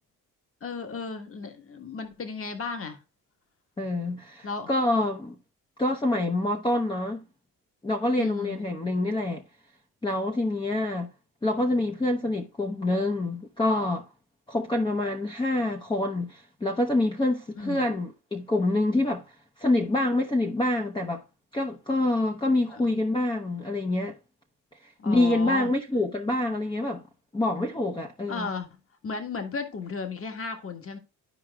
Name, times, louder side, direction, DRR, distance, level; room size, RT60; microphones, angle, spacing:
voice 1, 0.6-3.0 4.4-4.7 8.2-8.7 17.6-17.9 22.7-22.8 25.0-25.7 28.3-28.7 29.0-31.0, left 4 dB, 35° left, 1.5 m, -34 dB
voice 2, 3.8-5.4 5.8-7.3 7.8-9.4 10.0-11.1 11.4-14.1 14.5-19.2 19.6-21.2 21.5-24.2 24.8-27.0 27.3-28.5, left 2 dB, 10° left, 0.8 m, -26 dB
13.0 x 4.7 x 2.3 m
cardioid pair, 95°, 38 cm